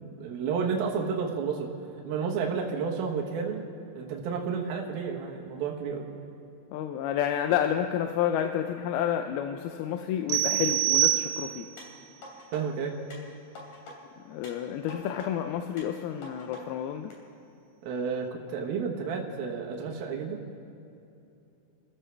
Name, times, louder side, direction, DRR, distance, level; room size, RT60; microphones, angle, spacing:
voice 1, 0.0-1.7 2.1-3.6 3.9-6.1 12.5-13.0 17.8-20.4, right 5 dB, 75° right, 0 dB, 3.0 m, -31 dB
voice 2, 6.7-11.7 14.3-17.1, left 9 dB, 80° left, 6 dB, 2.5 m, -30 dB
sound 1, 10.3-11.8, right 15 dB, 90° right, 2.8 m, -25 dB
sound 2, 11.8-12.6 13.1-14.0 14.4-15.3 15.8-16.6 17.1-17.2, left 1 dB, 55° left, 4.1 m, -46 dB
29.5 x 14.5 x 3.4 m, 2.8 s
omnidirectional pair, 4.5 m